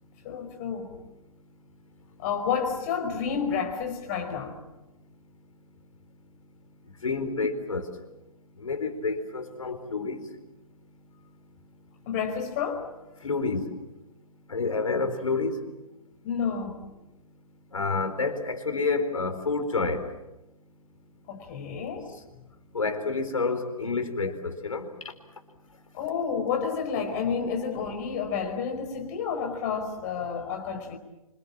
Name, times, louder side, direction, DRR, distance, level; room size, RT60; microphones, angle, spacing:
voice 1, 0.2-0.9 2.2-4.6 12.1-12.9 16.2-16.9 21.3-22.1 25.9-31.0, left 6 dB, 30° left, 4 dB, 5.1 m, -30 dB
voice 2, 7.0-7.9 8.6-10.2 13.2-13.6 14.5-15.6 17.7-20.1 22.7-24.9, left 4 dB, 65° left, 8 dB, 4.3 m, -28 dB
26.5 x 26.5 x 7.4 m, 0.98 s
figure-of-eight pair, 135°, 19 cm